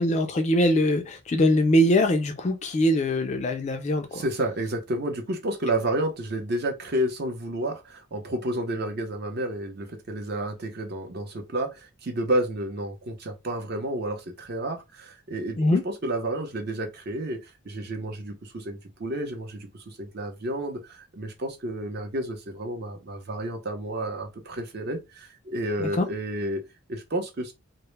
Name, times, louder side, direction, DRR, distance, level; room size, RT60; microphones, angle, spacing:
voice 1, 0.0-4.2 15.6-15.8 25.8-26.1, left 1 dB, 30° left, 0.3 m, -22 dB
voice 2, 4.1-15.6 15.8-17.4 17.6-26.6 26.9-27.5, right 1 dB, 50° right, 0.6 m, -30 dB
2.1 x 2.0 x 3.1 m
head